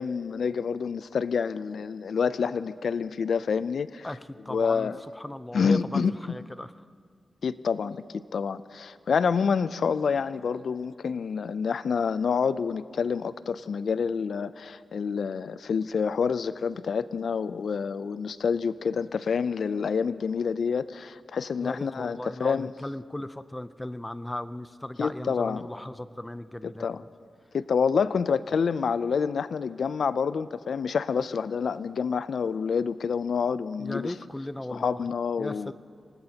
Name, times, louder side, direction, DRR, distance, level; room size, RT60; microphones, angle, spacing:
voice 1, 0.0-4.1 4.5-5.0 5.5-6.3 7.4-22.7 25.0-25.7 26.6-27.0 27.5-34.1 34.7-35.7, left 6 dB, 75° left, 15 dB, 0.4 m, -28 dB
voice 2, 4.0-6.8 21.6-26.9 33.8-35.0 35.4-35.7, left 1 dB, 15° left, 13 dB, 0.5 m, -37 dB
26.5 x 19.0 x 2.9 m, 2.1 s
wide cardioid pair, 100°, 0 cm